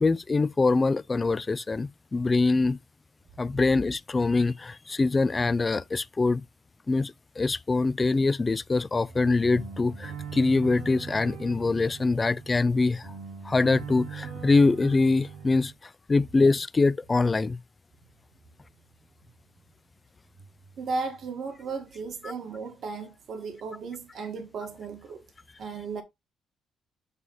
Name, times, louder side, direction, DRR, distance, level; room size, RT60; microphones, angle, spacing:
voice 1, 0.0-2.8 3.4-6.4 6.9-13.1 13.4-17.6, left 3 dB, 25° left, 0.4 m, -24 dB
sound 1, 9.1-15.7, right 6 dB, 80° right, 3.8 m, -41 dB
voice 2, 20.8-25.2 25.6-26.0, right 4 dB, 60° right, 1.6 m, -35 dB
8.2 x 3.2 x 5.5 m
cardioid pair, 90°, 0 cm